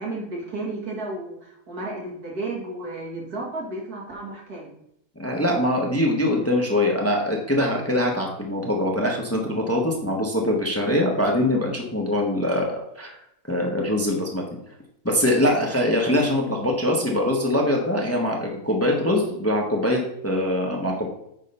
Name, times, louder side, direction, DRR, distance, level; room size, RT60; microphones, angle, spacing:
voice 1, 0.0-4.7, right 2 dB, 75° right, -3 dB, 2.7 m, -33 dB
voice 2, 5.2-13.2 13.5-14.4 15.0-21.1, left 1 dB, 10° left, 0 dB, 1.1 m, -23 dB
9.0 x 3.7 x 5.4 m, 0.76 s
omnidirectional pair, 1.6 m